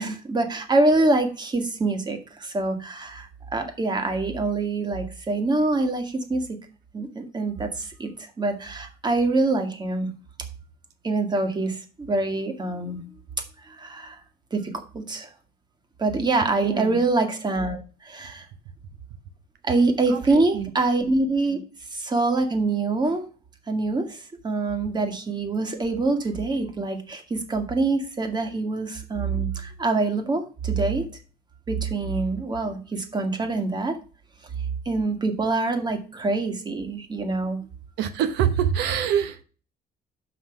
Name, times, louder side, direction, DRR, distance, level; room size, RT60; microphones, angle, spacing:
voice 1, 0.0-6.4 6.9-10.1 11.0-13.0 13.6-14.2 14.5-15.3 16.0-18.5 19.6-21.6 21.9-23.3 23.7-31.0 31.7-34.0 34.9-37.6, right 3 dB, 25° right, 1.9 m, -25 dB
voice 2, 16.6-17.0 20.1-20.7 38.0-39.4, right 9 dB, 85° right, 0.9 m, -25 dB
6.0 x 5.7 x 5.8 m
cardioid pair, 110°, 17 cm